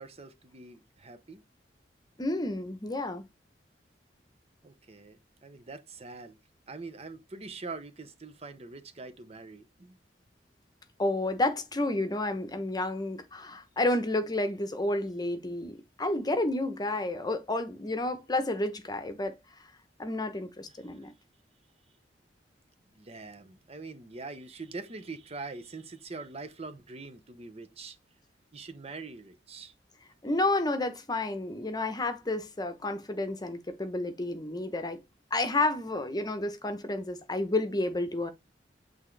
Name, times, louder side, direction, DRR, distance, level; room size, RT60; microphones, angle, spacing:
voice 1, 0.0-1.4 4.6-6.4 6.7-10.0 15.1-15.5 20.8-21.1 22.9-28.0 28.5-29.7, right 3 dB, 35° right, 0.8 m, -44 dB
voice 2, 2.2-3.2 11.0-19.4 20.0-21.1 30.2-35.0 35.3-38.3, left 2 dB, 25° left, 0.9 m, -30 dB
8.1 x 3.5 x 3.3 m
head